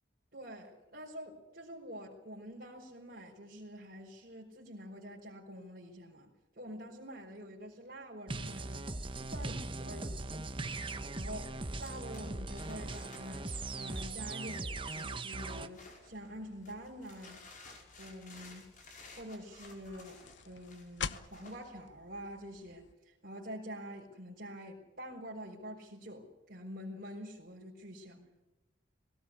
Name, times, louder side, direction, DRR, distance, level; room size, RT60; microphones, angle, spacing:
voice 1, 0.3-8.9 9.3-10.3 11.1-11.5 11.8-17.4 18.0-18.7 19.2-28.3, equal, 50° right, -6 dB, 4.7 m, -47 dB
sound 1, 8.3-15.7, right 2 dB, 25° right, 1.2 m, -40 dB
sound 2, 11.8-16.3 16.6-21.7, left 3 dB, 40° left, 5.4 m, -55 dB
sound 3, 15.9-22.9, left 6 dB, 70° left, 0.9 m, -48 dB
21.0 x 18.5 x 8.6 m, 1.0 s
head